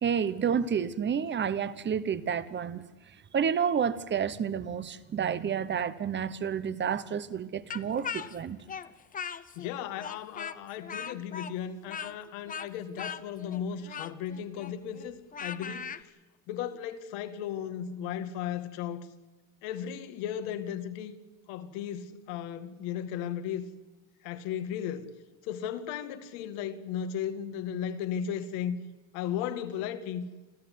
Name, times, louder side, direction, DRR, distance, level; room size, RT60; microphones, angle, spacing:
voice 1, 0.0-2.9 3.3-8.6, right 7 dB, 20° right, 1.0 m, -30 dB
Speech, 7.7-9.7 10.0-16.0, left 7 dB, 15° left, 0.6 m, -39 dB
voice 2, 9.6-16.1 16.5-19.1 19.6-21.1 21.5-23.7 24.2-25.1 25.4-28.8 29.1-30.3, left 9 dB, 70° left, 2.3 m, -35 dB
27.0 x 14.0 x 9.6 m
cardioid pair, 140°, 50 cm